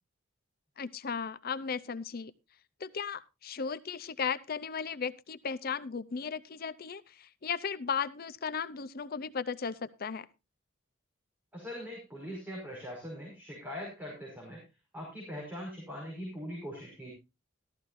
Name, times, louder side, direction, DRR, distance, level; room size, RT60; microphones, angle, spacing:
voice 1, 0.8-2.3 2.8-10.3, left 6 dB, 50° left, 14 dB, 0.6 m, -36 dB
voice 2, 11.5-14.6 14.9-17.1, equal, 10° right, -3 dB, 5.2 m, -41 dB
14.0 x 13.5 x 2.6 m, 0.25 s
head